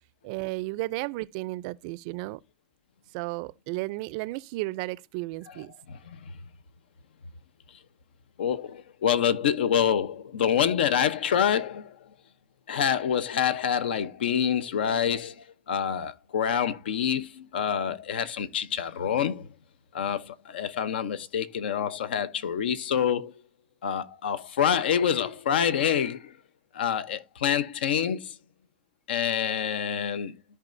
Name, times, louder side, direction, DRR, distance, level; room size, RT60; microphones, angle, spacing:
voice 1, 0.2-2.4 3.1-5.7, right 21 dB, 45° right, 0.4 m, -33 dB
voice 2, 5.9-6.3 8.4-12.0 12.7-19.5 19.9-23.3 23.8-26.3 26.7-28.4 29.1-30.3, left 8 dB, 90° left, 0.8 m, -27 dB
14.0 x 4.7 x 2.6 m
supercardioid pair, 155°, 5 cm